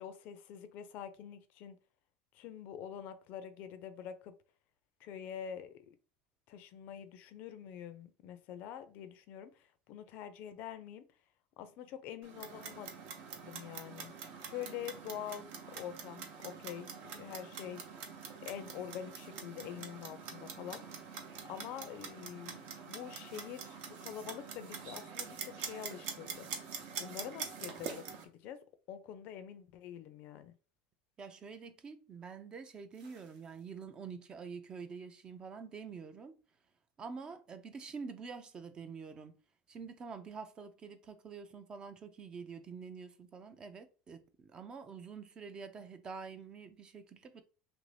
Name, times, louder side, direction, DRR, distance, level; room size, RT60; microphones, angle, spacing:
voice 1, 0.0-1.8 2.3-4.3 5.0-6.0 6.5-11.0 11.6-12.9 13.4-14.1 14.4-17.8 18.4-20.8 21.5-22.6 22.9-26.5 27.0-28.6 28.9-30.5, left 9 dB, 50° left, 0.4 m, -46 dB
Clock, 12.2-28.2, right 6 dB, 60° right, 0.7 m, -45 dB
sound 1, 22.9-24.2 27.7-28.6 30.5-30.6 32.9-34.0 36.9-37.0, right 4 dB, 90° right, 1.0 m, -63 dB
voice 2, 31.2-36.4 37.0-39.4 39.7-47.4, right 5 dB, 25° right, 0.3 m, -47 dB
2.9 x 2.6 x 3.2 m
supercardioid pair, 145°, 4 cm